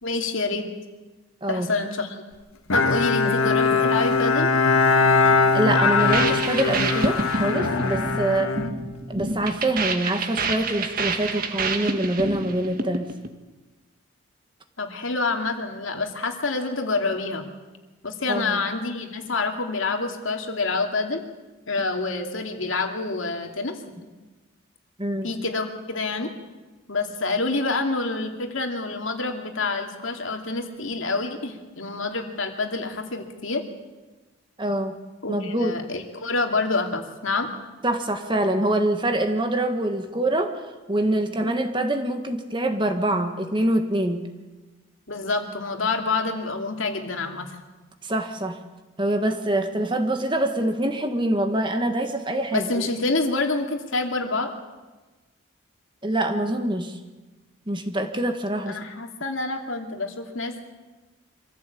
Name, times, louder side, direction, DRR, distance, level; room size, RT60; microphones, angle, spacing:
voice 1, 0.0-0.7 1.5-2.2 2.7-4.5 14.8-17.5 18.0-21.2 21.7-23.8 25.2-26.3 26.9-33.6 35.2-37.5 45.1-47.6 52.5-54.5 58.7-60.5, left 3 dB, 70° left, 4 dB, 2.6 m, -27 dB
Bowed string instrument, 2.7-9.4, left 4 dB, 85° left, 1.6 m, -21 dB
voice 2, 5.5-8.5 9.1-13.1 18.3-18.6 25.0-25.3 34.6-34.9 35.3-35.7 37.8-40.6 40.9-44.3 48.0-48.6 49.0-52.9 56.0-57.0 57.7-58.8, right 1 dB, 20° right, 5 dB, 1.6 m, -25 dB
sound 1, 6.0-13.3, right 3 dB, 45° right, 1.6 m, -28 dB
25.0 x 15.5 x 8.5 m, 1.2 s
head